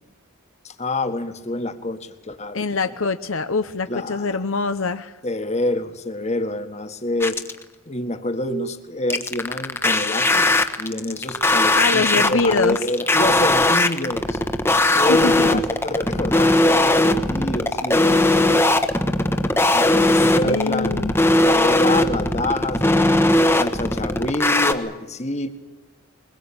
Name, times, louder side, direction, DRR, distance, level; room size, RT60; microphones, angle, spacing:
voice 1, 0.6-2.6 3.9-4.4 5.2-7.4 7.9-14.4 14.9-18.7 19.7-23.1 23.6-25.5, left 1 dB, 30° left, 8 dB, 1.7 m, -27 dB
voice 2, 2.5-5.1 11.7-12.8 14.9-15.6 20.4-21.1, left 4 dB, 65° left, 9 dB, 0.9 m, -24 dB
sound 1, 7.2-7.6 9.1-24.7, left 2 dB, 10° left, 1.2 m, -18 dB
22.5 x 21.5 x 8.8 m, 1.1 s
head